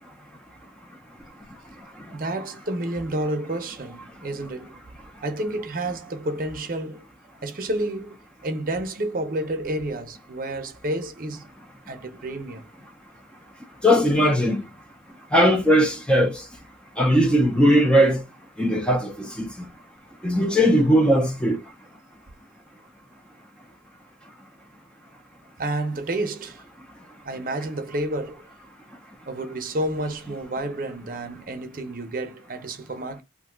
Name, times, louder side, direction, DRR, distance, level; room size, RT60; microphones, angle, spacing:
voice 1, 2.1-4.8 5.2-7.0 7.4-8.2 8.4-11.5 11.9-12.7 25.6-26.6 27.2-28.5 29.3-33.2, right 1 dB, 45° right, 0.6 m, -30 dB
voice 2, 13.8-14.6 15.3-16.4 17.0-18.2 18.6-19.7 20.2-21.6, equal, 5° left, 0.4 m, -19 dB
2.6 x 2.2 x 3.7 m
head